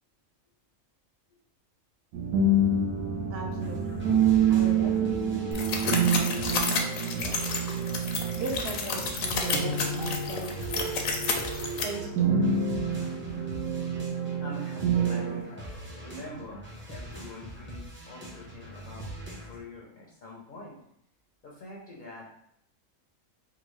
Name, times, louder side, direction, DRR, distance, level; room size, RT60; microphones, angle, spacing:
sound 1, 2.1-15.4, right 4 dB, 90° right, 1.1 m, -28 dB
voice 1, 3.3-4.1 4.5-7.5 8.0-10.7 11.8-12.4, right 2 dB, 60° right, 0 dB, 0.7 m, -39 dB
sound 2, 3.6-19.6, right 1 dB, 10° right, 0.6 m, -43 dB
sound 3, 5.5-11.8, left 5 dB, 75° left, 0.9 m, -31 dB
voice 2, 14.4-15.7 15.9-20.8 21.4-22.3, left 2 dB, 50° left, -3 dB, 0.6 m, -45 dB
3.7 x 2.2 x 3.1 m, 0.73 s
omnidirectional pair, 1.4 m